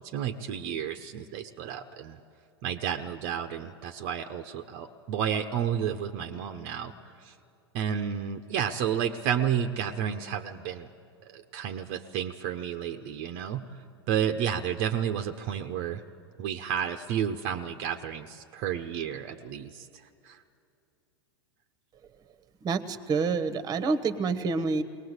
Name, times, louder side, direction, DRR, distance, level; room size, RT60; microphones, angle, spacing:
voice 1, 0.1-2.2 2.6-6.9 7.2-7.3 7.7-10.9 11.2-13.6 14.1-16.0 16.4-19.9 20.2-20.4, right 9 dB, 50° right, 5 dB, 0.9 m, -31 dB
voice 2, 22.6-24.8, right 4 dB, 30° right, 11 dB, 1.2 m, -27 dB
21.0 x 19.0 x 8.1 m, 2.5 s
hypercardioid pair, 95°, 14 cm